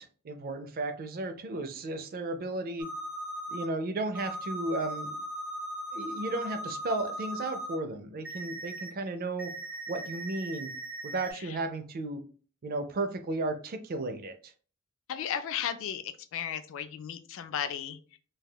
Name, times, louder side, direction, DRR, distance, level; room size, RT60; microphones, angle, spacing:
voice 1, 0.0-2.9 3.5-5.2 5.9-9.5 9.9-10.7 11.0-12.2 12.6-14.5, right 2 dB, 45° right, 9 dB, 0.4 m, -34 dB
sound 1, 2.8-3.6 4.1-7.7 8.2-8.9 9.4-11.3, right 1 dB, 5° right, 0.7 m, -38 dB
voice 2, 15.1-18.2, left 9 dB, 65° left, 12 dB, 0.4 m, -35 dB
3.4 x 2.3 x 2.2 m, 0.40 s
head